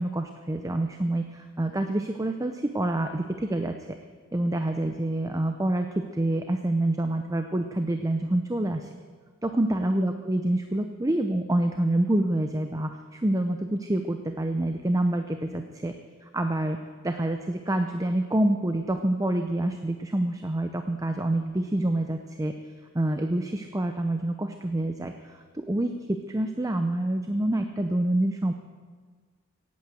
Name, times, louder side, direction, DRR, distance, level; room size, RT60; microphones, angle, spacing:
voice 1, 0.0-3.7 4.3-8.9 9.4-15.9 16.3-16.8 17.0-22.5 22.9-28.5, right 1 dB, 15° right, 6 dB, 0.6 m, -27 dB
17.0 x 8.6 x 7.7 m, 1.5 s
head